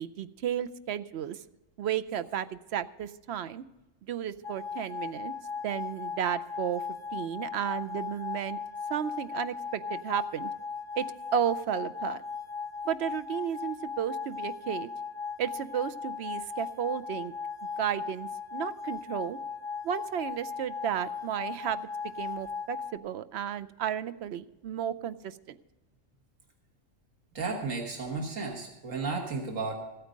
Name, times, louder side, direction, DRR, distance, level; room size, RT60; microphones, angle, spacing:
voice 1, 0.0-1.4 1.8-3.6 4.0-5.3 5.6-6.8 7.1-8.6 8.9-10.5 11.0-11.1 11.3-12.2 12.9-14.9 15.4-17.3 17.8-19.4 19.8-21.9 22.2-25.6, right 9 dB, 65° right, 13 dB, 0.8 m, -33 dB
sound 1, 4.4-23.0, left 5 dB, 55° left, 0.7 m, -37 dB
voice 2, 27.4-29.7, right 4 dB, 85° right, 2 dB, 1.8 m, -33 dB
14.5 x 8.9 x 5.1 m, 1.0 s
omnidirectional pair, 1.3 m